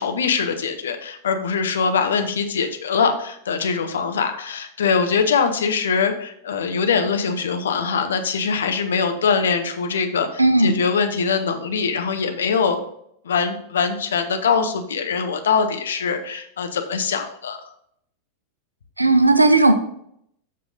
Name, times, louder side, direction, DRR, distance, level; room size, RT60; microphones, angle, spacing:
voice 1, 0.0-12.8 13.2-17.6, left 5 dB, 65° left, 7 dB, 0.8 m, -22 dB
voice 2, 10.4-10.8 19.0-19.7, right 2 dB, 85° right, 10 dB, 0.6 m, -15 dB
7.5 x 5.7 x 3.9 m, 0.72 s
figure-of-eight pair, 90°, 0 cm